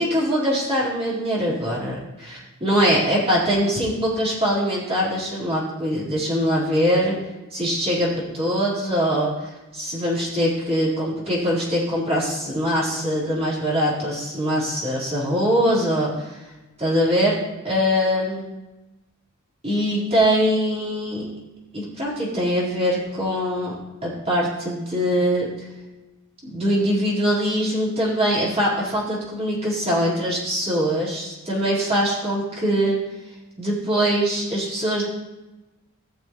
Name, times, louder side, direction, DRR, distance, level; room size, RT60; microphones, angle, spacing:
voice 1, 0.0-7.2 7.5-9.3 9.7-16.4 16.8-17.4 17.6-18.4 19.6-21.3 21.7-23.8 24.0-25.5 26.5-33.0 33.6-35.0, equal, 30° right, -7 dB, 3.9 m, -22 dB
17.5 x 6.6 x 3.1 m, 1.1 s
head